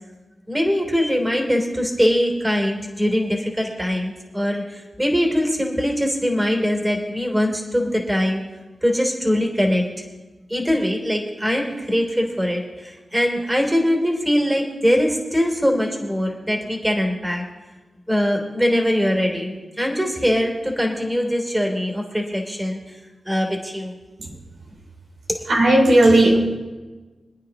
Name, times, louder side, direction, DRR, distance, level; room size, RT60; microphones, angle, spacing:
voice 1, 0.5-8.4 8.8-9.8 10.5-17.4 18.1-22.9 23.2-23.9 25.3-25.4, equal, 10° right, 1 dB, 3.3 m, -22 dB
voice 2, 25.5-26.4, right 1 dB, 85° right, -4 dB, 4.1 m, -14 dB
27.0 x 9.4 x 3.0 m, 1.2 s
cardioid pair, 50°, 0 cm